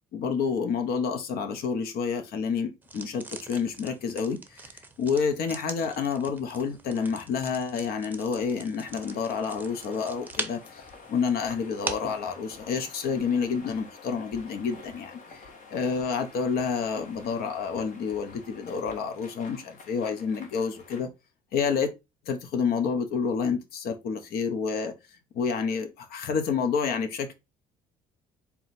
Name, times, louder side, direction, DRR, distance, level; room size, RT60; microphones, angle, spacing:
voice 1, 0.1-4.7 5.0-15.4 15.7-21.1 21.5-21.9 22.3-24.9 25.3-27.3, left 6 dB, 65° left, 0.9 m, -29 dB
sound 1, 2.8-12.2, right 3 dB, 10° right, 0.7 m, -42 dB
sound 2, 8.8-21.1, left 4 dB, 50° left, 1.2 m, -49 dB
4.2 x 2.3 x 4.1 m
cardioid pair, 95°, 17 cm